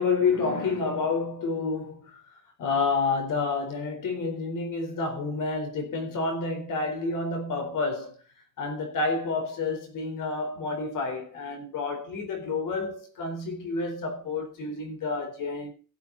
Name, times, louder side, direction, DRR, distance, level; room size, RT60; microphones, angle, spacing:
voice 1, 0.0-2.0 2.6-8.2 8.6-15.7, left 4 dB, 85° left, 4.3 m, -29 dB
15.5 x 8.6 x 4.1 m
cardioid pair, 125°, 31 cm